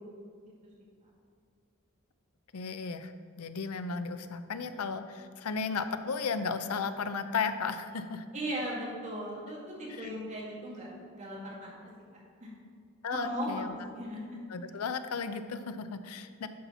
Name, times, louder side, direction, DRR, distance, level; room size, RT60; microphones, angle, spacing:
voice 1, 2.5-3.1 3.4-8.2 9.9-10.1 13.0-13.7 14.5-16.5, left 5 dB, 85° left, 10 dB, 0.6 m, -34 dB
voice 2, 8.3-11.9 12.4-12.5 13.1-14.4, equal, 30° right, -4 dB, 2.2 m, -37 dB
11.0 x 4.3 x 5.6 m, 2.2 s
head